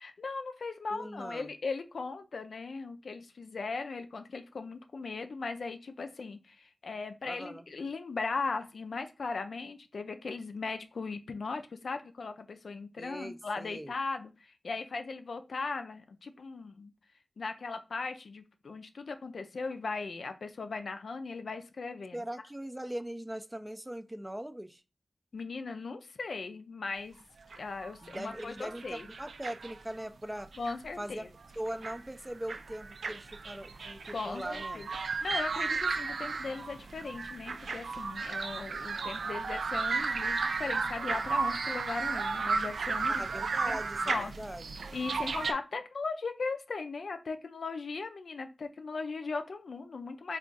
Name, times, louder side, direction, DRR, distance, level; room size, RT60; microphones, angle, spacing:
voice 1, 0.0-16.9 17.4-22.2 25.3-27.2 27.6-29.1 30.6-31.3 34.1-34.9 35.2-43.3 43.7-43.8 44.1-44.3 44.9-50.4, left 4 dB, 80° left, 0.4 m, -38 dB
voice 2, 0.9-1.5 7.2-7.6 13.0-13.9 22.1-24.8 28.0-30.5 31.0-31.3 31.6-34.9 43.1-44.9, right 1 dB, 15° right, 0.4 m, -41 dB
sound 1, 27.5-29.9 30.4-30.9 31.4-32.0 32.3-45.5, right 4 dB, 85° right, 0.3 m, -34 dB
3.5 x 2.4 x 3.8 m
cardioid pair, 50°, 0 cm